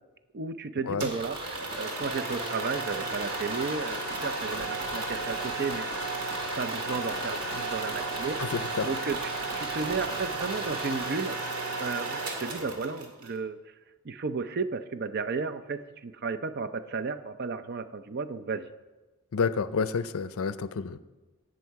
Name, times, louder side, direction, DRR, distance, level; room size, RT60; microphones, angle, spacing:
voice 1, 0.3-6.2 6.6-11.4 11.8-13.6 14.0-18.7, right 4 dB, 45° right, 11 dB, 0.6 m, -34 dB
sound 1, 1.0-12.0 12.2-12.3, right 2 dB, 25° right, 1.0 m, -42 dB
sound 2, 1.0-13.3, right 2 dB, 85° right, 1.7 m, -34 dB
voice 2, 8.4-8.9 19.3-21.0, left 5 dB, 65° left, 15 dB, 0.5 m, -29 dB
16.5 x 6.4 x 4.7 m, 1.2 s
head